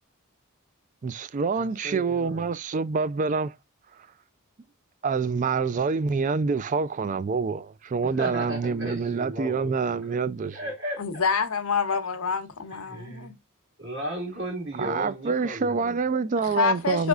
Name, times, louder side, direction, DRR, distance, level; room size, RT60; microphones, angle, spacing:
voice 1, 1.0-3.6 5.0-10.6 14.8-17.1, right 5 dB, 35° right, 0.3 m, -26 dB
voice 2, 1.5-2.5 8.2-9.7 10.0-10.2 10.5-11.2 12.7-13.3 13.8-16.0, equal, 60° right, 1.8 m, -35 dB
voice 3, 11.0-13.3 16.4-17.1, left 5 dB, 80° left, 0.8 m, -26 dB
5.3 x 3.5 x 2.3 m
head